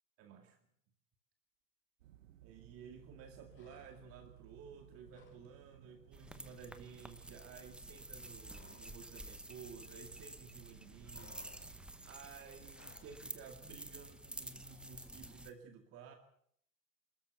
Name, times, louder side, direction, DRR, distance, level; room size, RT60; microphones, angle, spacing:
voice 1, 0.2-0.6 2.4-16.2, right 6 dB, 30° right, 5 dB, 2.2 m, -54 dB
sound 1, 2.0-12.1, right 12 dB, 50° right, 1.2 m, -61 dB
sound 2, 3.5-4.3 4.6-5.5 5.7-5.9 6.2-9.0 9.3-10.4 10.6-13.2, left 5 dB, 25° left, 5.7 m, -64 dB
sound 3, 6.1-15.5, right 1 dB, ahead, 1.0 m, -51 dB
27.0 x 13.5 x 7.9 m, 0.68 s
figure-of-eight pair, 100°, 49 cm